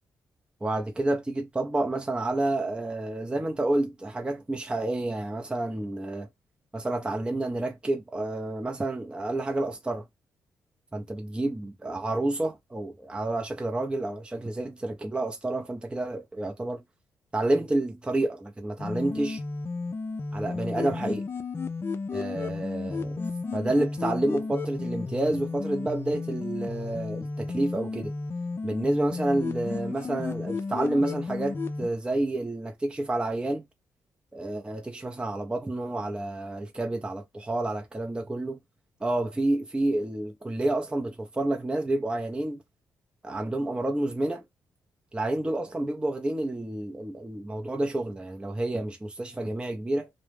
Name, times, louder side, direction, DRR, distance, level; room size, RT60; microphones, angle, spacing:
voice 1, 0.6-6.3 6.7-10.1 10.9-16.8 17.3-19.4 20.3-21.3 22.1-23.2 23.5-28.1 28.6-33.7 34.3-38.6 39.0-42.6 43.2-44.4 45.1-50.1, right 2 dB, 15° right, 0.6 m, -29 dB
sound 1, 18.8-31.9, left 4 dB, 35° left, 0.5 m, -33 dB
2.2 x 2.1 x 3.3 m
supercardioid pair, 65°, 6 cm